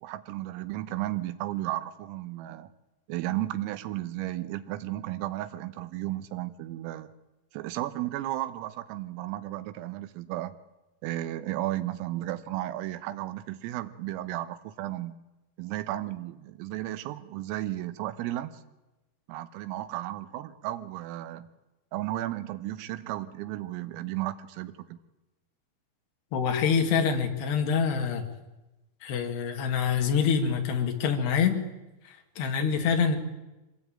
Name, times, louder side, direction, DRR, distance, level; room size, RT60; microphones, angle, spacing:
voice 1, 0.0-2.7 3.1-7.1 7.5-10.6 11.0-15.2 15.6-18.5 19.3-21.5 21.9-25.0, right 15 dB, 85° right, 11 dB, 3.8 m, -34 dB
voice 2, 26.3-28.3 29.0-31.6 32.1-33.2, left 6 dB, 60° left, 4 dB, 3.8 m, -26 dB
25.0 x 17.5 x 8.9 m, 1.0 s
omnidirectional pair, 5.9 m